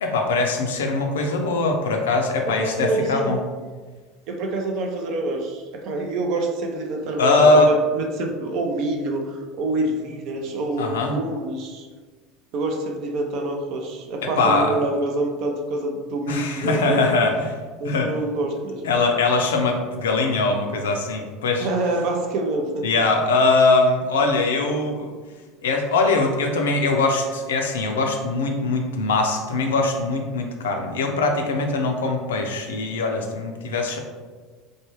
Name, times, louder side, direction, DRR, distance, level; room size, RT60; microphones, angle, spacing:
voice 1, 0.0-3.4 7.2-7.7 10.8-11.1 14.2-14.8 16.3-17.5 17.8-18.1 18.8-21.7 22.8-25.1 25.6-34.0, left 3 dB, 75° left, 3 dB, 0.4 m, -21 dB
voice 2, 2.5-3.4 4.3-11.9 12.5-17.0 17.8-18.9 21.6-22.9, right 2 dB, 55° right, 3 dB, 0.5 m, -26 dB
3.1 x 2.2 x 3.0 m, 1.4 s
figure-of-eight pair, 75°, 0 cm